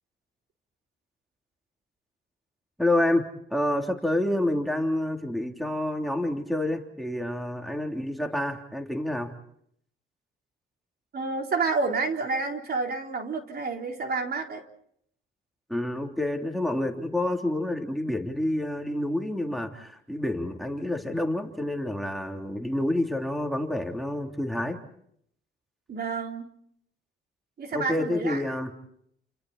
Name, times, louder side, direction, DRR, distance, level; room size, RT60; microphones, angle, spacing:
voice 1, 2.8-9.4 15.7-24.8 27.7-28.7, left 1 dB, ahead, 3 dB, 3.3 m, -28 dB
voice 2, 11.1-14.6 25.9-26.5 27.6-28.4, right 4 dB, 50° right, 3 dB, 4.0 m, -29 dB
30.0 x 29.0 x 4.3 m, 0.69 s
cardioid pair, 90°, 20 cm